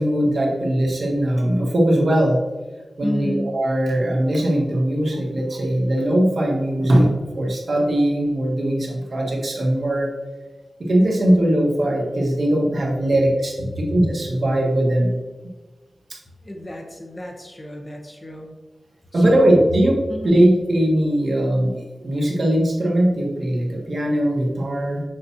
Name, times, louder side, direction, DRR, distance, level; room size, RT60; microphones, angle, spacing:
voice 1, 0.0-2.4 3.0-10.1 10.8-15.1 19.1-19.9 20.2-25.0, right 1 dB, 60° right, -2 dB, 1.6 m, -20 dB
voice 2, 3.0-3.5 13.7-13.8 16.4-18.5 19.1-19.7 20.1-20.4, left 1 dB, 25° left, 1 dB, 1.1 m, -31 dB
7.0 x 6.5 x 2.9 m, 1.2 s
wide cardioid pair, 95°, 0 cm